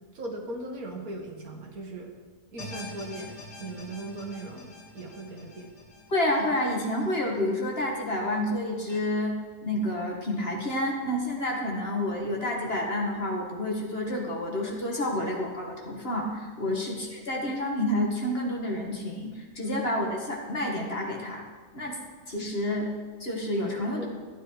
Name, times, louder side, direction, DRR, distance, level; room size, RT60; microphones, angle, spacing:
voice 1, 0.1-2.1 2.5-5.7 16.7-16.8 19.6-19.8 23.6-24.0, right 2 dB, 60° right, 2 dB, 2.0 m, -39 dB
sound 1, 2.6-7.8 8.2-8.3 8.9-9.0, left 2 dB, 80° left, 2.9 m, -45 dB
voice 2, 6.1-9.3 9.6-21.4 21.7-22.0 22.3-22.9 23.2-24.0, left 1 dB, 35° left, -1 dB, 2.1 m, -29 dB
14.5 x 10.5 x 4.8 m, 1.4 s
omnidirectional pair, 1.8 m